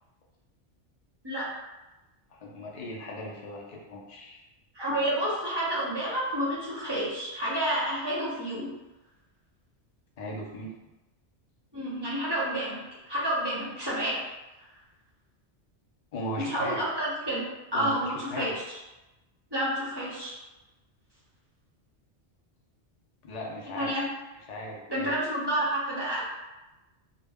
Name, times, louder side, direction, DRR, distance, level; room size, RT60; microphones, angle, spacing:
voice 1, 2.3-4.4 10.2-10.7 16.1-16.8 17.7-18.5 23.2-23.9 24.5-25.1, equal, 55° left, -2 dB, 0.4 m, -38 dB
voice 2, 4.7-8.7 11.7-14.3 14.6-14.7 16.4-17.4 17.7-18.8 19.5-20.3 23.7-24.1 24.9-26.3, right 1 dB, 25° right, -7 dB, 0.6 m, -30 dB
2.2 x 2.1 x 3.4 m, 1.0 s
omnidirectional pair, 1.2 m